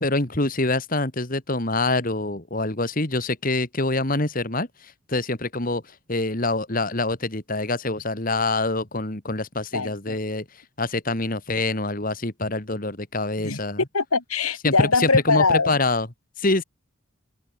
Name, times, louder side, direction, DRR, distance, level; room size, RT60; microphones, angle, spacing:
voice 1, 0.0-4.7 5.1-5.8 6.1-10.4 10.8-13.8 14.6-16.1 16.4-16.6, left 2 dB, 40° left, 2.1 m, -25 dB
voice 2, 9.7-10.2 13.4-13.6 13.9-15.8, left 4 dB, 90° left, 2.9 m, -22 dB
head